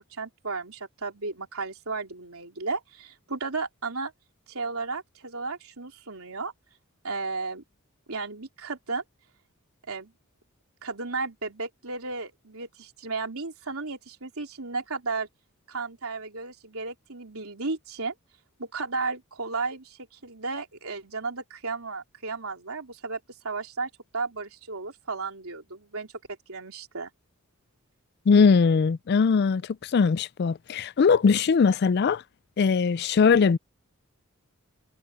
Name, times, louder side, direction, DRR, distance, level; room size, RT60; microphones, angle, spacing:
voice 1, 0.0-4.1 4.5-6.5 7.0-7.6 8.1-9.0 9.9-10.1 10.8-15.3 15.7-18.1 18.6-26.1 26.5-27.1, right 4 dB, 85° right, 3.5 m, -34 dB
voice 2, 28.3-32.2 32.6-33.6, left 5 dB, 50° left, 0.3 m, -21 dB
head